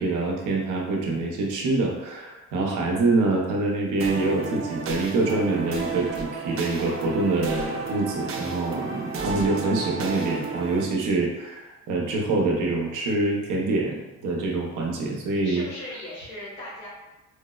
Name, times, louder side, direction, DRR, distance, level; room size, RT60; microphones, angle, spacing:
voice 1, 0.0-15.6, right 2 dB, 90° right, -1 dB, 0.7 m, -25 dB
sound 1, 4.0-10.9, right 4 dB, 45° right, 0.5 m, -32 dB
voice 2, 15.4-16.9, left 1 dB, 85° left, -7 dB, 1.5 m, -37 dB
4.5 x 2.0 x 2.3 m, 1.1 s
cardioid pair, 90°, 30 cm